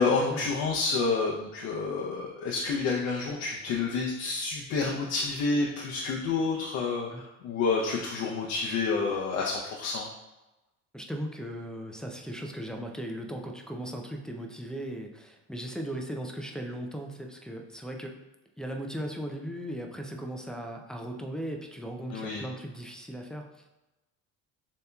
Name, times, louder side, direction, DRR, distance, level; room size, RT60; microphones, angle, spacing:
voice 1, 0.0-10.1 22.1-22.4, left 4 dB, 65° left, -2 dB, 0.6 m, -29 dB
voice 2, 10.9-18.2 18.6-23.7, right 1 dB, ahead, 1 dB, 0.3 m, -37 dB
6.8 x 2.8 x 2.3 m, 1.0 s
cardioid pair, 125°, 31 cm